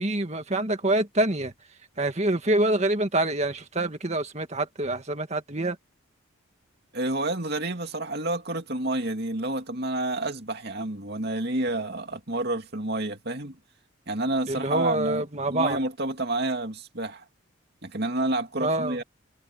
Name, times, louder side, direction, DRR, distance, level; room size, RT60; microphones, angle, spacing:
voice 1, 0.0-1.5 2.0-5.8 14.5-15.8 18.6-19.0, right 1 dB, 30° right, 1.8 m, -26 dB
voice 2, 6.9-13.6 14.1-17.2 17.8-19.0, right 2 dB, 50° right, 2.7 m, -29 dB
head